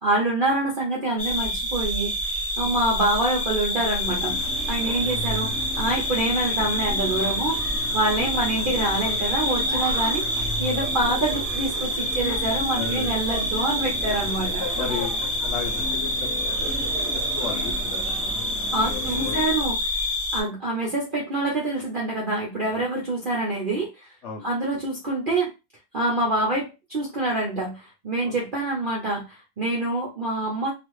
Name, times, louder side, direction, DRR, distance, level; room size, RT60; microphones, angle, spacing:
voice 1, 0.0-2.1 2.6-4.3 4.7-5.5 5.8-7.6 7.9-14.6 18.7-19.8 20.3-24.1 24.4-25.5 25.9-30.7, right 2 dB, 80° right, -4 dB, 0.4 m, -26 dB
sound 1, 1.2-20.4, equal, 15° left, 0.4 m, -27 dB
sound 2, 4.0-19.5, left 2 dB, 50° left, 0.9 m, -36 dB
voice 2, 4.8-5.1 8.2-8.4 12.7-13.2 14.6-16.9 17.1-18.5 18.9-19.7 24.2-24.8 28.2-28.3, left 5 dB, 85° left, 0 dB, 0.6 m, -36 dB
2.9 x 2.4 x 3.1 m, 0.26 s
omnidirectional pair, 2.0 m